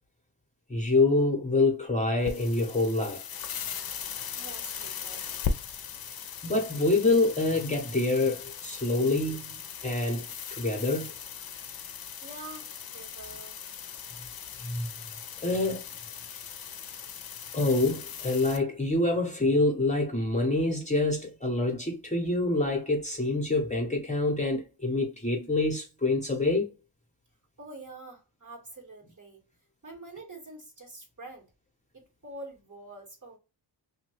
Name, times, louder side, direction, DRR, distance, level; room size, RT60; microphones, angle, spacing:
voice 1, 0.7-3.3 6.4-11.1 14.6-14.9 15.4-15.9 17.5-26.7, left 2 dB, 15° left, 1.0 m, -26 dB
sound 1, 2.2-18.6, left 7 dB, 50° left, 0.6 m, -39 dB
voice 2, 4.4-5.3 6.0-6.2 12.2-13.6 27.6-29.4 29.8-31.5 31.9-33.4, right 2 dB, 40° right, 1.8 m, -46 dB
2.8 x 2.6 x 3.1 m
cardioid pair, 60°, 48 cm